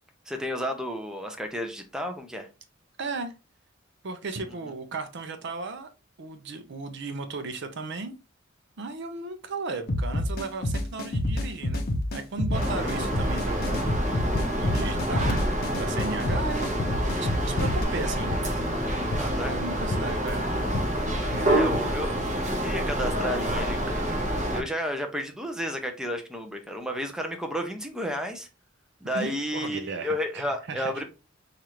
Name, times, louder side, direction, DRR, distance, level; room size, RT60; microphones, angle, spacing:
voice 1, 0.3-2.5 4.6-4.7 16.3-16.4 19.0-19.5 21.5-22.1 22.6-28.5 29.0-31.0, equal, 5° right, 0.5 m, -32 dB
voice 2, 3.0-3.3 4.0-5.9 6.2-8.1 8.8-11.8 12.1-13.8 14.6-15.4 15.8-16.8 17.2-18.3 19.4-20.4 21.3-21.6 29.1-31.0, right 3 dB, 60° right, 0.5 m, -35 dB
sound 1, 9.9-17.8, left 1 dB, 50° left, 0.6 m, -29 dB
sound 2, 12.5-24.6, right 1 dB, 35° right, 0.8 m, -27 dB
sound 3, 14.3-21.8, left 2 dB, 85° left, 0.5 m, -36 dB
4.7 x 2.4 x 2.9 m
head